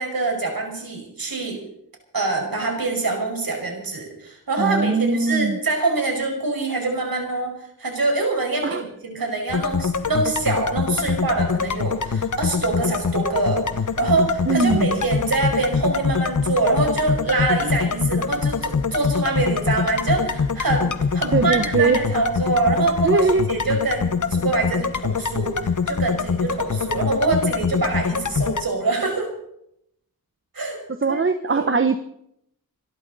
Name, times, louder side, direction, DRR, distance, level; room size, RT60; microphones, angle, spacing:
voice 1, 0.0-1.6 2.1-29.3 30.5-30.8 31.1-31.2 31.5-31.7, right 3 dB, 70° right, 2 dB, 5.4 m, -25 dB
voice 2, 4.6-5.6 8.6-8.8 14.5-15.0 21.3-22.0 23.0-23.5 31.0-32.0, right 4 dB, 35° right, 10 dB, 0.9 m, -20 dB
sound 1, 9.5-28.6, left 5 dB, 55° left, 1.1 m, -24 dB
26.5 x 12.5 x 4.1 m, 0.74 s
wide cardioid pair, 65°, 37 cm